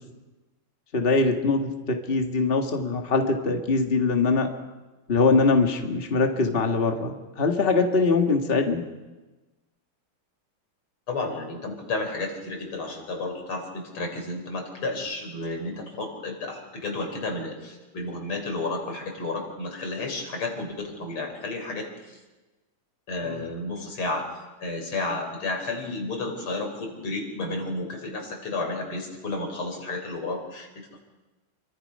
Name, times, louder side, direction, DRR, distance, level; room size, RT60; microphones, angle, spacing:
voice 1, 0.9-4.5 5.1-8.8 23.2-23.5, left 3 dB, 30° left, 4 dB, 1.9 m, -23 dB
voice 2, 11.1-22.2 23.1-31.0, left 2 dB, 90° left, 3 dB, 5.2 m, -32 dB
28.5 x 24.0 x 5.5 m, 1.2 s
omnidirectional pair, 2.3 m